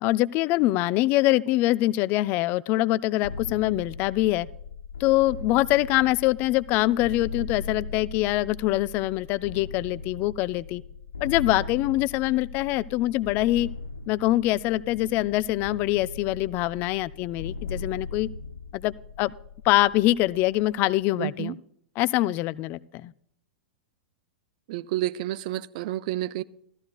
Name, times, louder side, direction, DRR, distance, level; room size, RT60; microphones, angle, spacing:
voice 1, 0.0-4.5 5.0-10.8 11.2-13.7 14.1-18.3 18.7-19.3 19.6-21.6 22.0-23.1, left 17 dB, 35° left, 0.3 m, -24 dB
sound 1, 3.2-20.9, left 4 dB, 85° left, 0.5 m, -39 dB
voice 2, 21.2-21.6 24.7-26.4, right 15 dB, 50° right, 0.5 m, -30 dB
14.5 x 14.0 x 2.4 m
figure-of-eight pair, 100°, 5 cm